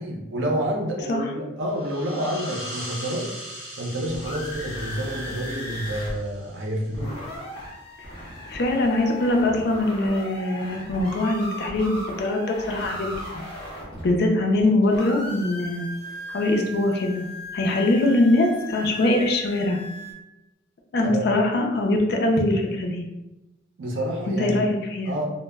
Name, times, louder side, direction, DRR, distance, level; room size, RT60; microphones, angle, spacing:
voice 1, 0.0-3.3 3.8-7.1 21.0-21.3 23.8-24.6 25.1-25.3, right 1 dB, 75° right, 1 dB, 0.5 m, -28 dB
sound 1, 1.6-7.0, equal, 35° right, 0.9 m, -40 dB
sound 2, 4.1-6.1 6.4-6.5 6.7-14.6 14.9-20.1, left 1 dB, 25° left, 0.7 m, -37 dB
voice 2, 8.5-13.4 14.0-15.9 16.3-17.3 17.5-19.8 20.9-23.0 24.3-25.1, left 2 dB, 55° left, 2 dB, 0.4 m, -22 dB
2.0 x 2.0 x 3.3 m, 0.99 s
head